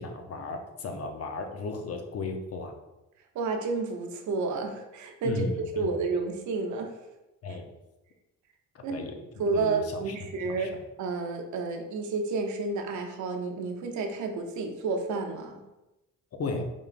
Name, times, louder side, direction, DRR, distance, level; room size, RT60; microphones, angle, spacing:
voice 1, 0.0-2.7 5.2-5.9 7.4-7.7 8.7-9.2 9.5-10.2 10.4-10.7 16.4-16.6, left 3 dB, 50° left, 5 dB, 0.8 m, -35 dB
voice 2, 3.3-7.0 8.8-9.1 9.4-10.7 11.0-15.6, right 3 dB, 70° right, 4 dB, 0.7 m, -31 dB
4.9 x 3.7 x 2.5 m, 0.99 s
cardioid pair, 90°, 30 cm